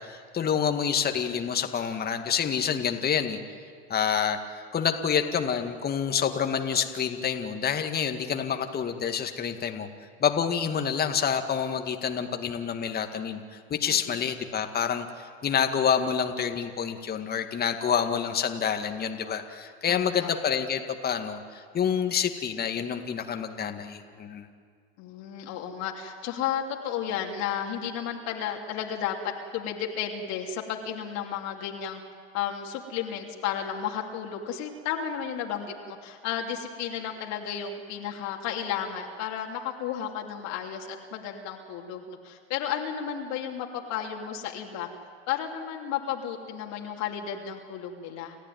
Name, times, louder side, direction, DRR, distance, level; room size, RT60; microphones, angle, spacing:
voice 1, 0.0-3.4 3.9-4.4 4.7-9.9 10.2-13.4 13.7-24.5, left 7 dB, 30° left, 6 dB, 2.0 m, -28 dB
voice 2, 13.9-14.2 19.9-20.3 25.0-32.0 32.3-44.9 45.3-48.4, left 8 dB, 55° left, 1 dB, 2.9 m, -33 dB
29.0 x 15.0 x 9.4 m, 2.1 s
hypercardioid pair, 90°, 32 cm